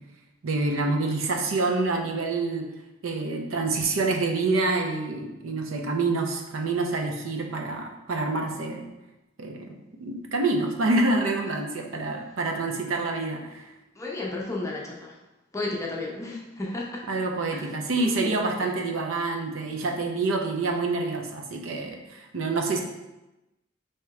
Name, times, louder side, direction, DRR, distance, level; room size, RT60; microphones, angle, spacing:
voice 1, 0.4-2.7 3.0-8.8 9.4-13.6 17.1-22.8, right 3 dB, 85° right, 2 dB, 0.6 m, -27 dB
voice 2, 14.0-15.2 15.5-17.0 18.0-18.7, left 2 dB, 15° left, -2 dB, 0.5 m, -33 dB
3.3 x 2.9 x 4.7 m, 1.0 s
head